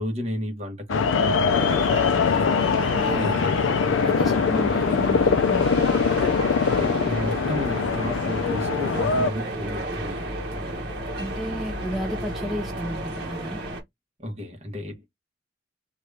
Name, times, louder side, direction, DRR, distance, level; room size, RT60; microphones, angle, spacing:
voice 1, 0.0-2.5 3.1-3.7 6.6-10.9 14.2-15.1, left 1 dB, 35° right, 1.2 m, -33 dB
sound 1, 0.9-9.3, left 5 dB, 85° left, 0.4 m, -22 dB
sound 2, 1.5-13.8, right 1 dB, 55° right, 1.1 m, -32 dB
voice 2, 3.9-6.0 11.2-13.6, equal, ahead, 0.4 m, -32 dB
2.9 x 2.4 x 3.2 m
head